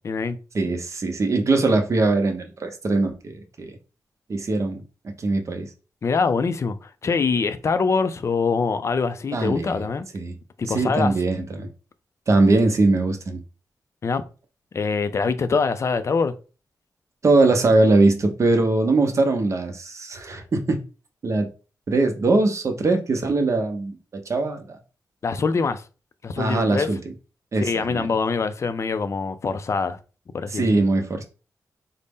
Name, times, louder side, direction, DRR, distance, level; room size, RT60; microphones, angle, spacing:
voice 1, 0.0-0.4 6.0-10.1 10.6-11.1 14.0-14.2 14.7-16.3 25.2-25.8 26.2-26.9 27.6-30.0 30.3-30.8, left 4 dB, 45° left, 0.4 m, -24 dB
voice 2, 0.5-3.7 4.3-4.8 5.2-5.7 9.3-9.8 10.1-10.3 10.7-11.7 12.3-13.4 17.2-20.8 21.2-21.5 21.9-24.0 24.3-24.8 26.4-27.0 27.5-28.1 30.5-31.2, right 2 dB, 50° right, 0.7 m, -21 dB
4.0 x 2.0 x 3.5 m
wide cardioid pair, 115°, 7 cm